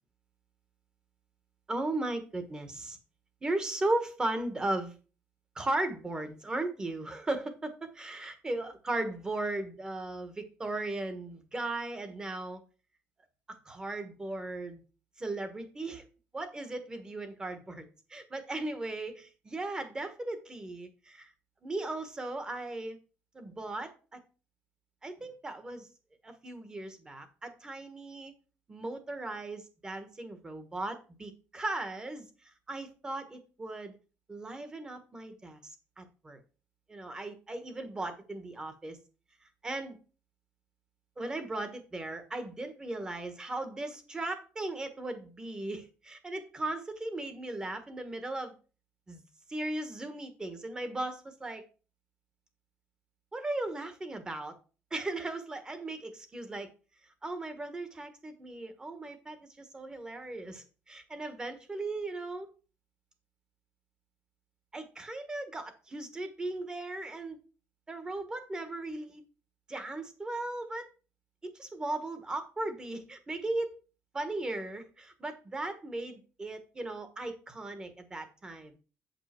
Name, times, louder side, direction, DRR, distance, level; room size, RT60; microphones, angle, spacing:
voice 1, 1.7-3.0 3.4-4.9 5.5-12.6 13.5-14.8 15.2-16.1 16.3-21.3 21.6-23.0 23.3-24.2 25.0-25.9 26.2-28.3 28.7-33.9 34.3-36.4 36.9-39.0 39.6-40.0 41.2-48.5 49.1-49.2 49.5-51.6 53.3-54.5 54.9-56.7 57.0-62.5 64.7-67.4 67.9-69.2 69.7-70.9 71.4-73.8 74.1-78.8, right 2 dB, 15° right, 8 dB, 1.2 m, -37 dB
8.2 x 5.5 x 4.3 m, 0.34 s
cardioid pair, 165°, 5 cm